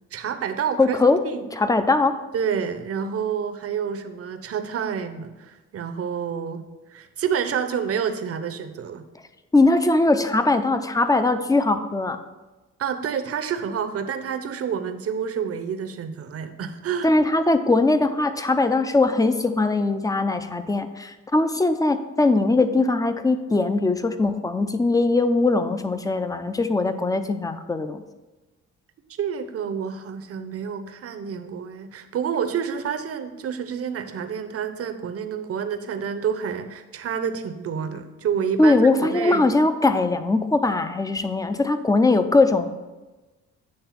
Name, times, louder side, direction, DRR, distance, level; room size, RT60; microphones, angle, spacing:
voice 1, 0.1-0.9 1.2-1.5 2.3-9.0 12.8-17.1 29.2-39.4, right 7 dB, 50° right, 8 dB, 0.7 m, -28 dB
voice 2, 0.8-1.2 1.5-2.2 9.5-12.2 17.0-28.0 38.6-42.7, left 2 dB, 10° left, 10 dB, 0.5 m, -20 dB
8.7 x 3.4 x 5.7 m, 1.2 s
cardioid pair, 90°, 30 cm